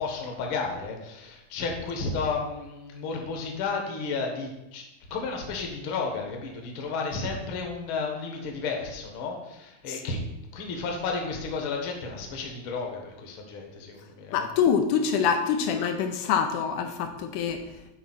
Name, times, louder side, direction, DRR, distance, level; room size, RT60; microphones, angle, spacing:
voice 1, 0.0-4.8 5.1-10.2 10.5-14.5, left 4 dB, 55° left, 2 dB, 1.5 m, -32 dB
voice 2, 14.3-17.6, left 7 dB, 80° left, 5 dB, 2.1 m, -25 dB
8.7 x 4.1 x 5.9 m, 0.92 s
omnidirectional pair, 3.7 m